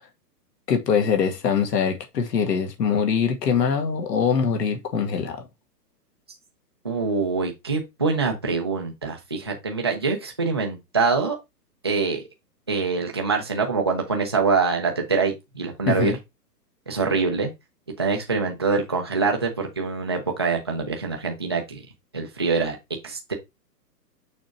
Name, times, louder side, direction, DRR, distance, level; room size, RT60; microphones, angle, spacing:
voice 1, 0.7-5.5 15.9-16.2, left 6 dB, 75° left, 1.9 m, -23 dB
voice 2, 6.8-11.4 11.8-12.2 12.7-16.1 16.9-17.5 18.0-21.8 22.1-22.8 23.0-23.3, right 4 dB, 20° right, 0.4 m, -24 dB
6.3 x 3.6 x 4.5 m
hypercardioid pair, 155°, 49 cm